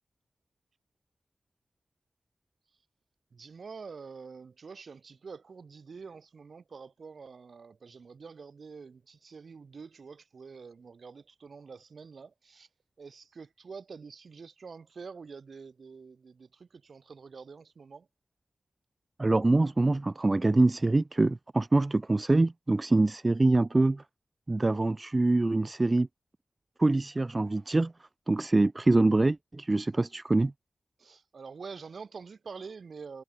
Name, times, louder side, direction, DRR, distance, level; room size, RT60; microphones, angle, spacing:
voice 1, 3.3-12.7 13.0-18.1 31.0-33.2, right 5 dB, 70° right, 4.2 m, -46 dB
voice 2, 19.2-24.0 24.5-26.1 26.8-27.9 28.3-30.5, right 2 dB, 30° right, 0.3 m, -24 dB
wide cardioid pair, 110°, 0 cm